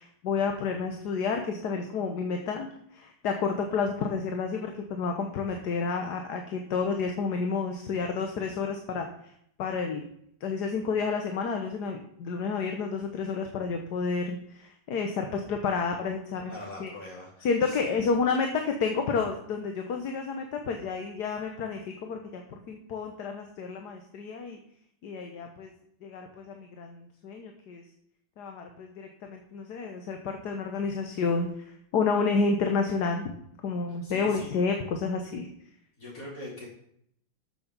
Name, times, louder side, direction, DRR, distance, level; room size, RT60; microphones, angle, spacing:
voice 1, 0.0-9.1 9.6-10.1 10.4-16.5 16.8-16.9 17.4-24.6 25.0-25.7 26.0-27.8 28.4-33.3 33.6-35.5, left 4 dB, 60° left, 4 dB, 1.5 m, -30 dB
voice 2, 16.5-18.0 34.0-34.6 36.0-36.7, left 1 dB, 40° left, -4 dB, 4.3 m, -42 dB
13.0 x 6.9 x 5.3 m, 0.71 s
omnidirectional pair, 2.2 m